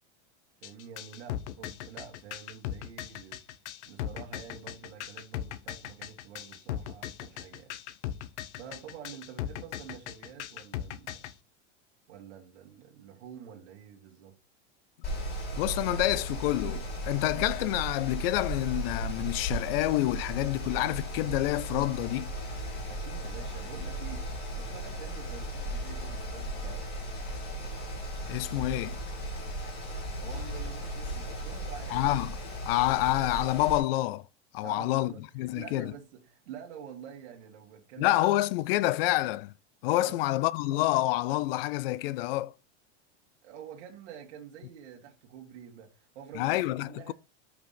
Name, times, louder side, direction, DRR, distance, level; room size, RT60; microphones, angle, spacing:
sound 1, 0.6-11.3, left 11 dB, 80° left, 0.9 m, -38 dB
voice 1, 0.6-3.4 3.8-7.8 8.5-11.3 12.1-14.4 22.9-27.0 30.2-32.1 34.6-38.2 39.9-40.2 43.4-47.1, right 8 dB, 75° right, 2.1 m, -47 dB
Mechanical fan, 15.0-33.8, right 1 dB, 30° left, 2.6 m, -36 dB
voice 2, 15.6-22.3 28.3-29.0 31.9-32.4 32.6-34.3 34.5-35.9 38.0-39.5 39.8-42.5 46.3-47.1, left 16 dB, 55° left, 0.4 m, -28 dB
6.0 x 5.0 x 5.7 m
supercardioid pair, 170°, 34 cm